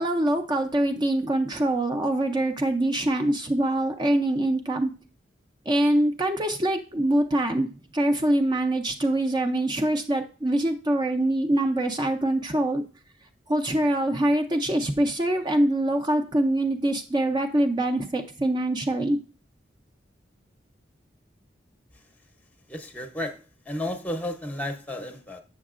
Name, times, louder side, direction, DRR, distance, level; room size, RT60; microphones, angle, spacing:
voice 1, 0.0-4.9 5.7-7.7 7.9-12.8 13.5-19.2, right 1 dB, 25° right, 0.5 m, -24 dB
voice 2, 22.7-25.4, left 1 dB, 10° left, 0.7 m, -33 dB
8.0 x 6.2 x 2.4 m
head